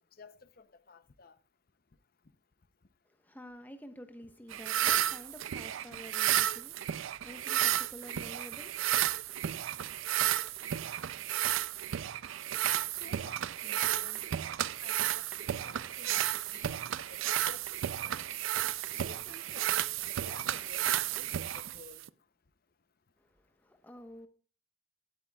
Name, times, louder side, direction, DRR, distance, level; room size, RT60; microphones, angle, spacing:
voice 1, 0.2-1.3 7.4-7.5 12.9-14.2 14.8-15.2 15.7-16.2 16.5-16.7 17.1-17.6 17.9-18.3 18.9-19.7 20.0-20.9 21.1-22.0, left 4 dB, 45° left, 0.6 m, -53 dB
voice 2, 3.2-6.8 7.2-8.9 23.6-24.3, equal, 10° left, 1.0 m, -49 dB
sound 1, 4.5-22.1, right 12 dB, 75° right, 0.4 m, -32 dB
16.0 x 9.1 x 2.3 m
head